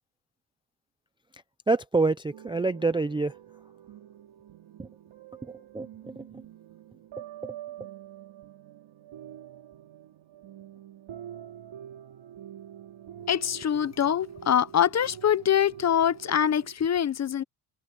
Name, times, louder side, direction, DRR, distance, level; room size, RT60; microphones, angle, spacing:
voice 1, 1.7-3.3 4.8-4.9 5.4-6.4 7.4-7.5, right 3 dB, 10° right, 0.3 m, -27 dB
sound 1, 2.3-16.8, right 10 dB, 65° right, 3.7 m, -46 dB
voice 2, 13.3-17.4, left 9 dB, 35° left, 0.6 m, -24 dB
cardioid pair, 155°, 50 cm